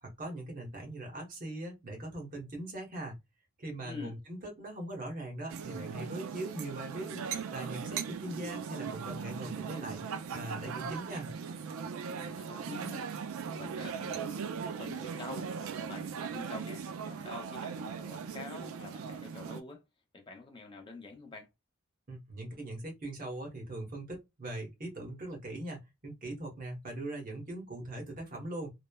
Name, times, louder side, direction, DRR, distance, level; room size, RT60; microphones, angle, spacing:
voice 1, 0.0-3.1 3.6-11.3 22.1-28.7, right 1 dB, 40° right, 0.9 m, -41 dB
sound 1, 5.5-19.6, right 6 dB, 85° right, 0.4 m, -39 dB
voice 2, 12.1-13.0 13.5-19.8 20.1-21.5, left 3 dB, 25° left, 0.5 m, -47 dB
2.9 x 2.0 x 2.2 m
head